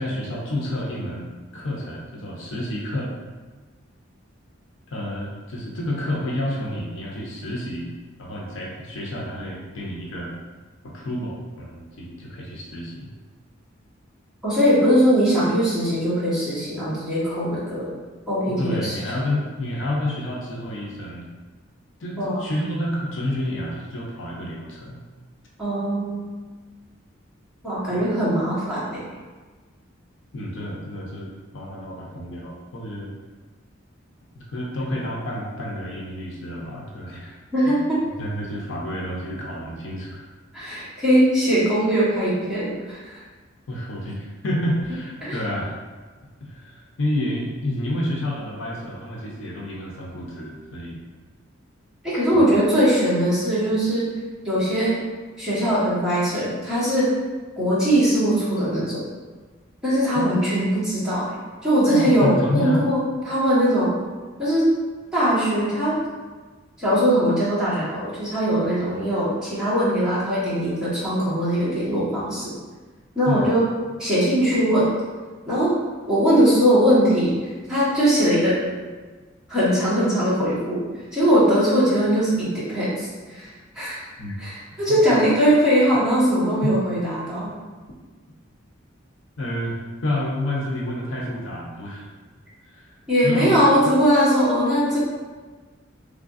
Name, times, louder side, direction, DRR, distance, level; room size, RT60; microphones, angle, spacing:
voice 1, 0.0-3.1 4.9-7.9 8.2-10.4 10.8-13.1 18.5-21.3 22.0-25.0 27.9-28.0 30.3-31.3 31.5-33.1 34.3-37.4 37.6-37.8 38.2-40.3 43.7-45.8 46.5-51.0 52.3-52.4 60.1-60.3 61.9-62.9 73.3-73.5 84.2-84.4 86.2-86.3 86.6-86.7 89.4-92.1 92.7-92.9 93.2-93.9, left 1 dB, 75° left, -3 dB, 0.7 m, -29 dB
voice 2, 14.4-17.9 18.3-18.9 22.2-22.4 25.6-26.2 27.6-29.1 37.5-38.0 40.5-43.2 45.2-45.4 52.0-54.1 54.4-55.0 55.4-57.1 57.6-59.0 59.8-61.4 61.6-63.0 63.2-64.0 64.4-64.7 65.1-65.9 66.8-72.5 73.1-73.7 74.0-74.9 75.5-75.7 76.1-77.3 77.7-78.6 79.5-80.8 81.1-83.5 83.7-84.0 84.4-87.5 93.1-95.0, equal, 5° right, -12 dB, 1.4 m, -20 dB
3.6 x 3.4 x 2.5 m, 1.4 s
head